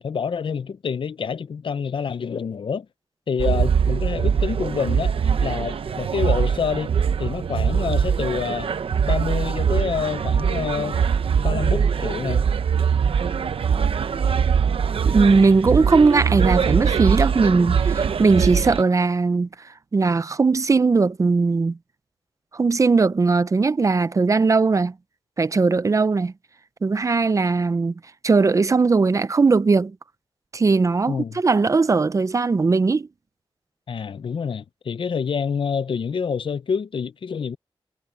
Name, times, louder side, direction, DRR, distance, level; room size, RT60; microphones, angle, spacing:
voice 1, 0.0-2.9 3.3-6.9 7.2-8.7 9.1-11.0 11.4-12.5 31.1-31.4 33.9-37.6, left 6 dB, 65° left, 0.6 m, -27 dB
sound 1, 3.4-18.8, right 7 dB, 75° right, 0.8 m, -22 dB
voice 2, 15.1-21.8 22.5-24.9 25.4-26.3 26.8-27.9 28.2-30.0 30.5-33.1, right 4 dB, 35° right, 0.5 m, -19 dB
wide cardioid pair, 150°, 9 cm